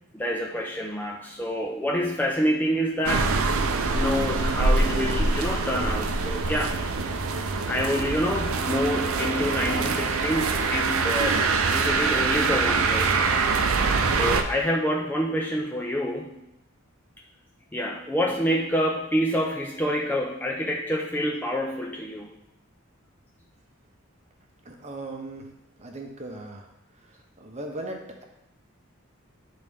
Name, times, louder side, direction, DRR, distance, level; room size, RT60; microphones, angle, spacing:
voice 1, 0.1-3.3 3.9-6.8 7.7-11.4 11.7-13.1 14.1-16.4 17.7-22.4, equal, 10° left, -1 dB, 0.4 m, -27 dB
sound 1, 3.1-14.4, right 4 dB, 75° right, 0.6 m, -24 dB
voice 2, 24.6-25.5 25.8-26.6 27.4-28.2, right 2 dB, 30° right, 2 dB, 0.8 m, -37 dB
10.5 x 3.9 x 3.5 m, 0.85 s
head